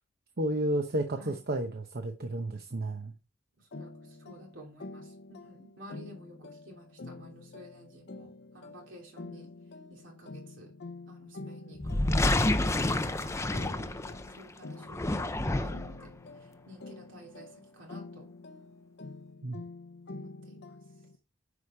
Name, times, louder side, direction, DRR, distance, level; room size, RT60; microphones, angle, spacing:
voice 1, 0.4-3.1 19.4-19.6, right 1 dB, 55° right, 0.8 m, -32 dB
voice 2, 3.6-9.5 9.9-10.7 11.1-12.5 12.8-18.3 20.2-20.6, equal, 70° right, 3.0 m, -52 dB
sound 1, 3.7-21.2, left 2 dB, 60° left, 0.7 m, -47 dB
sound 2, 11.8-14.4 14.8-16.0, left 1 dB, 15° left, 0.6 m, -28 dB
9.8 x 5.0 x 4.9 m
head